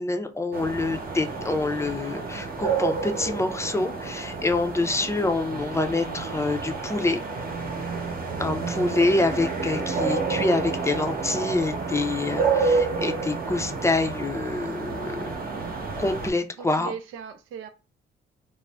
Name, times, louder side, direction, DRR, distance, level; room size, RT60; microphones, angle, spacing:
voice 1, 0.0-7.2 8.4-15.2 16.0-16.9, left 2 dB, 15° left, 0.5 m, -26 dB
sound 1, 0.5-16.3, right 4 dB, 45° right, 0.8 m, -29 dB
voice 2, 4.8-5.1 16.6-17.7, right 7 dB, 90° right, 0.5 m, -40 dB
2.4 x 2.0 x 3.4 m
cardioid pair, 90°, 20 cm